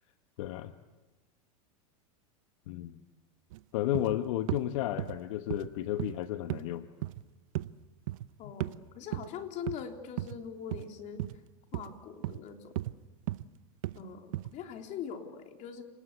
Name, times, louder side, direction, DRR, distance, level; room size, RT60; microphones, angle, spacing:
voice 1, 0.4-0.7 2.7-2.9 3.7-6.9 8.4-8.5, left 13 dB, 70° left, 9 dB, 1.2 m, -33 dB
sound 1, 3.5-3.6 3.9-4.2 4.5-4.7 5.0-5.2 5.5-5.7 6.0-6.2 6.5-6.7 7.0-7.2 7.5-7.7 8.1-8.3 8.6-8.8 9.1-9.3 9.7-9.8 10.2-10.4 10.7-10.8 11.2-11.4 11.7-12.0 12.2-12.4 12.8-13.0 13.3-13.5 13.8-14.0 14.3-14.5, right 16 dB, 70° right, 0.9 m, -35 dB
voice 2, 8.4-11.2 11.7-12.8 13.9-15.8, left 7 dB, 45° left, 4 dB, 3.6 m, -42 dB
30.0 x 20.5 x 8.3 m, 1.1 s
supercardioid pair, 115°, 18 cm